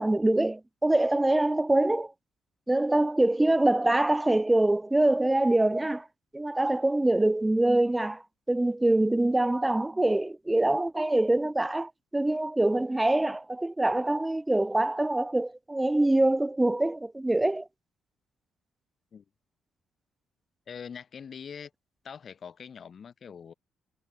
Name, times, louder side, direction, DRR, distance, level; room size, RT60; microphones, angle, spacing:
voice 1, 0.0-2.1 2.7-6.1 6.3-17.7, right 1 dB, 10° right, 0.8 m, -24 dB
voice 2, 20.7-21.7 22.0-23.5, left 7 dB, 50° left, 5.0 m, -43 dB
cardioid pair, 90°, 0 cm